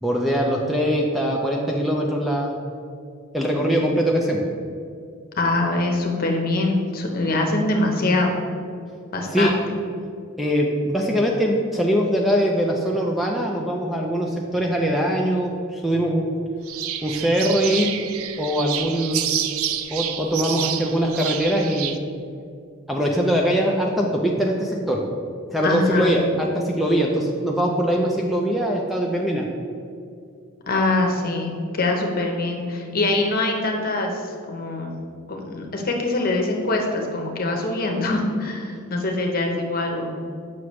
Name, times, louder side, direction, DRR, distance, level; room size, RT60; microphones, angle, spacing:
voice 1, 0.0-2.5 3.3-4.5 9.3-9.5 10.4-16.3 17.0-17.9 18.4-19.3 19.9-22.0 22.9-25.0 25.5-29.5, equal, ahead, -1 dB, 0.5 m, -22 dB
voice 2, 5.4-8.3 9.1-9.6 25.6-26.2 30.7-34.2 34.5-35.0 35.3-40.2, left 2 dB, 45° left, 2 dB, 0.9 m, -23 dB
sound 1, 16.7-22.0, right 10 dB, 85° right, 0.4 m, -29 dB
7.6 x 5.9 x 3.1 m, 2.3 s
head